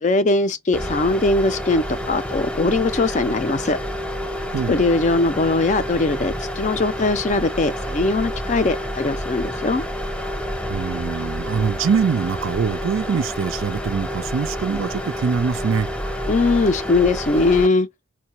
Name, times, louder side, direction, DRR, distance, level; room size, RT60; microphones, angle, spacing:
voice 1, 0.0-3.8 4.7-9.8 16.3-17.9, left 3 dB, 35° left, 0.4 m, -20 dB
sound 1, 0.7-17.7, equal, 5° left, 0.7 m, -29 dB
voice 2, 10.7-15.9, right 6 dB, 70° right, 0.4 m, -23 dB
4.5 x 2.2 x 2.9 m
head